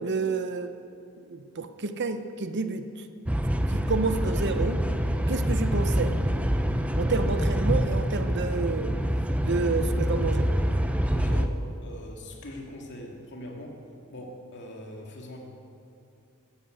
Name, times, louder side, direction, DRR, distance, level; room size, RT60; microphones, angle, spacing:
voice 1, 0.0-0.8 1.2-3.1 3.7-4.8 5.3-6.2 7.0-9.0 9.4-10.6, right 4 dB, 50° right, 9 dB, 0.8 m, -30 dB
sound 1, 3.3-11.5, equal, 5° right, 0.6 m, -26 dB
voice 2, 11.1-13.8 14.1-15.4, left 1 dB, 55° left, 0 dB, 2.4 m, -42 dB
13.5 x 13.0 x 8.1 m, 2.6 s
head